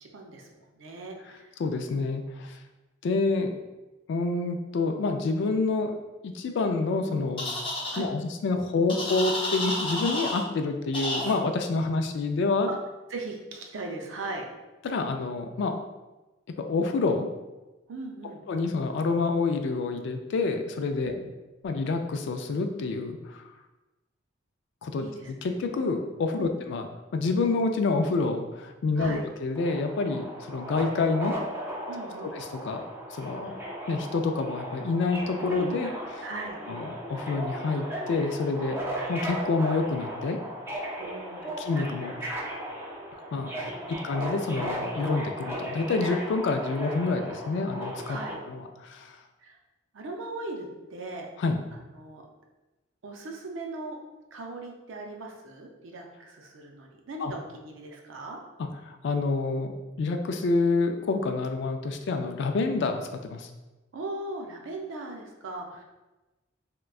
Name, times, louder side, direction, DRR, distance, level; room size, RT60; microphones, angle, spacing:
voice 1, 0.0-1.5 7.9-8.1 12.7-12.8 13.1-14.4 17.9-18.4 21.0-21.2 25.0-25.3 26.4-26.6 29.0-29.2 31.9-32.3 36.2-36.6 41.0-41.6 43.6-43.8 48.1-48.4 49.4-49.6 49.9-51.3 51.7-52.2 53.0-54.0 54.3-58.4 63.9-65.8, right 2 dB, 80° right, 2 dB, 0.5 m, -39 dB
voice 2, 1.6-2.6 3.0-3.5 4.1-6.0 6.2-7.6 8.0-12.7 14.8-15.8 16.6-17.3 18.5-21.1 21.6-23.4 24.8-31.4 32.3-32.8 33.1-33.6 33.9-36.3 36.7-38.8 39.1-40.4 41.7-42.3 43.3-43.7 44.0-48.2 48.5-49.2 51.4-51.6 57.2-57.3 58.6-63.5, left 3 dB, 65° left, 6 dB, 0.3 m, -28 dB
sound 1, 7.4-8.0 8.9-10.4 10.9-11.3, left 1 dB, 30° left, 0.6 m, -30 dB
Subway metro underground, 29.5-48.3, equal, 15° right, 0.4 m, -36 dB
3.7 x 2.2 x 2.3 m, 1.1 s
head